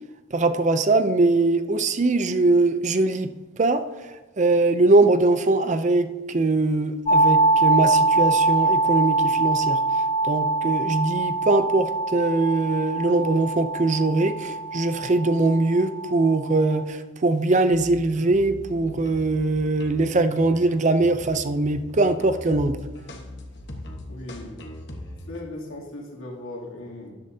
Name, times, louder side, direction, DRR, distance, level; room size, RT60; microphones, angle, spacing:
voice 1, 0.3-3.3 3.6-3.8 4.4-9.8 10.2-22.8, right 2 dB, 35° right, 10 dB, 0.5 m, -21 dB
sound 1, 7.1-16.8, right 2 dB, 30° left, 0.3 m, -23 dB
sound 2, 17.7-25.4, left 1 dB, 50° left, 1.3 m, -40 dB
voice 2, 24.1-24.6 25.3-27.1, left 2 dB, 75° left, -2 dB, 2.7 m, -37 dB
13.5 x 11.0 x 2.8 m, 1.2 s
head